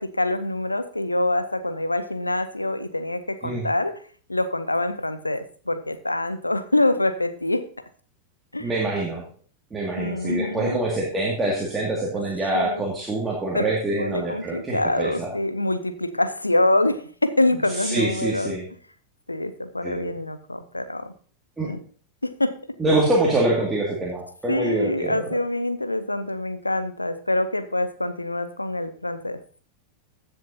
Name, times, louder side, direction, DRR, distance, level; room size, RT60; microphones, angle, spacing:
voice 1, 0.0-4.0 4.3-7.7 8.5-8.7 10.0-10.8 12.5-12.8 13.5-13.7 14.0-18.6 19.3-21.1 21.6-21.8 22.2-22.6 24.5-29.4, left 2 dB, 85° left, 12 dB, 0.8 m, -25 dB
voice 2, 8.6-9.2 9.7-15.3 17.8-18.7 19.8-20.1 21.6-21.7 22.8-25.2, right 2 dB, 10° right, -4 dB, 2.3 m, -25 dB
15.0 x 7.3 x 2.8 m, 0.43 s
figure-of-eight pair, 90°, 0 cm